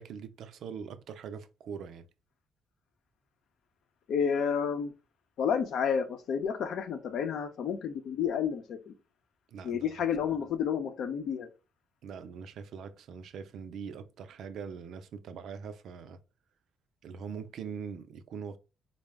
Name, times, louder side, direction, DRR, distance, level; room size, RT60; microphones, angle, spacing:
voice 1, 0.0-2.1 9.5-9.9 12.0-16.2 17.0-18.6, right 6 dB, 75° right, 0.4 m, -42 dB
voice 2, 4.1-4.9 5.4-8.9 9.6-11.5, left 7 dB, 75° left, 0.7 m, -30 dB
4.0 x 2.1 x 3.4 m
cardioid pair, 90°, 0 cm